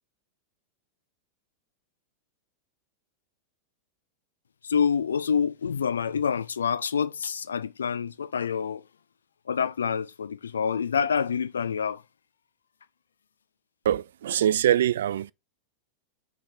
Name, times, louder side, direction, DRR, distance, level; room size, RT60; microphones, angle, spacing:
voice 1, 4.6-8.8 9.5-12.0, left 7 dB, 70° left, 0.4 m, -27 dB
voice 2, 13.8-15.3, right 11 dB, 60° right, 0.3 m, -23 dB
6.3 x 3.6 x 4.2 m
figure-of-eight pair, 90°, 0 cm